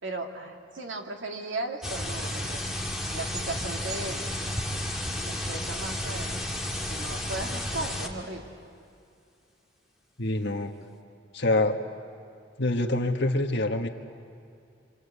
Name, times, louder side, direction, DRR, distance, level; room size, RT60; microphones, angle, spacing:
voice 1, 0.0-2.6 3.1-4.2 5.3-6.4 6.9-8.4, right 2 dB, 80° right, 2 dB, 2.4 m, -36 dB
sound 1, 1.8-8.1, left 1 dB, ahead, 2.4 m, -32 dB
voice 2, 10.2-10.7 11.3-11.8 12.6-13.9, left 2 dB, 65° left, 3 dB, 1.6 m, -25 dB
26.5 x 26.5 x 8.4 m, 2.4 s
head